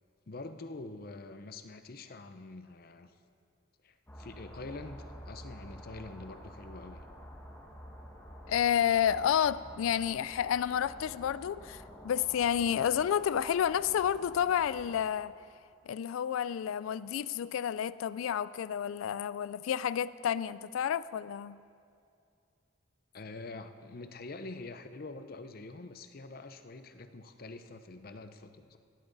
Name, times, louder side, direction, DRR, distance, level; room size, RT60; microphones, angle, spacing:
voice 1, 0.3-3.1 3.8-7.0 23.1-28.8, left 3 dB, 45° left, 0.6 m, -45 dB
sound 1, 4.1-15.0, equal, 10° left, 1.5 m, -49 dB
voice 2, 8.5-15.3 15.9-21.6, left 9 dB, 85° left, 0.3 m, -30 dB
17.0 x 11.5 x 4.0 m
head